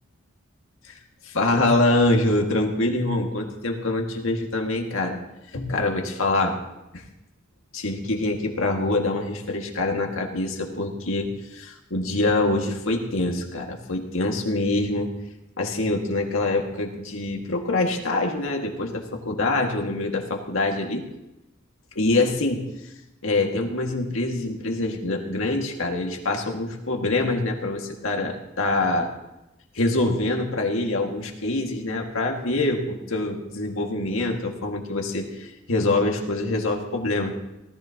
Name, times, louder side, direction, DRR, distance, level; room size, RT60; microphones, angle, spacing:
voice 1, 0.8-5.2 5.5-6.5 6.9-7.0 7.7-15.1 15.6-21.0 21.9-22.6 23.2-29.1 29.7-37.3, left 2 dB, 70° left, 1 dB, 2.1 m, -25 dB
18.5 x 14.0 x 3.0 m, 0.91 s
head